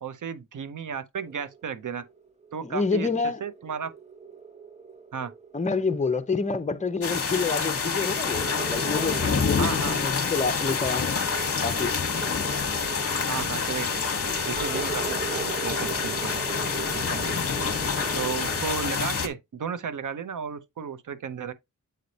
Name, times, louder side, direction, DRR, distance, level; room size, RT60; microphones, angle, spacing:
voice 1, 0.0-2.0 2.5-3.1 3.4-3.9 5.1-5.3 9.6-10.0 13.3-14.1 14.5-16.4 16.9-17.3 18.1-21.5, right 7 dB, 75° right, 0.7 m, -34 dB
sound 1, 1.3-18.6, right 5 dB, 20° right, 0.9 m, -39 dB
voice 2, 2.6-3.4 5.5-11.2 11.6-11.9, left 4 dB, 25° left, 0.6 m, -28 dB
sound 2, 7.0-19.3, left 5 dB, 45° left, 1.0 m, -27 dB
sound 3, 14.5-17.5, right 2 dB, 55° right, 4.2 m, -45 dB
7.9 x 3.2 x 4.0 m
wide cardioid pair, 100°, 32 cm